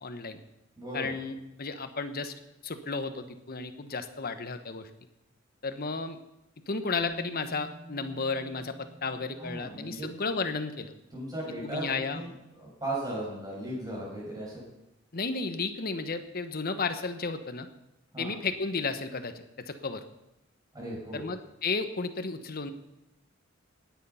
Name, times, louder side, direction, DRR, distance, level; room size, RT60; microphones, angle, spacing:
voice 1, 0.0-0.4 0.9-1.3 1.6-2.3 2.6-4.9 5.6-6.2 6.7-10.9 11.6-12.2 15.1-17.7 18.2-19.3 19.7-20.0 21.1-22.7, left 4 dB, 50° left, 9 dB, 1.1 m, -33 dB
voice 2, 0.8-1.1 9.4-10.1 11.1-11.9 12.1-14.8 18.1-18.4 20.7-21.3, right 1 dB, 20° right, -4 dB, 6.6 m, -37 dB
Bass guitar, 7.0-10.9 12.1-12.2, right 1 dB, 30° left, 4.4 m, -50 dB
18.0 x 9.4 x 5.7 m, 0.91 s
head